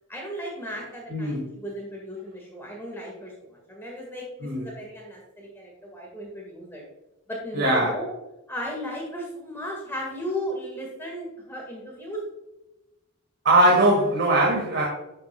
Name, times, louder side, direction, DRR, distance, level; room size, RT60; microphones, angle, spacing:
voice 1, 0.1-6.8 7.3-8.1 8.5-12.2, equal, 10° left, -2 dB, 1.7 m, -35 dB
voice 2, 1.1-1.5 4.4-4.6 7.5-7.9 13.4-14.9, right 1 dB, 60° right, -2 dB, 1.9 m, -20 dB
11.5 x 6.7 x 2.2 m, 0.98 s
head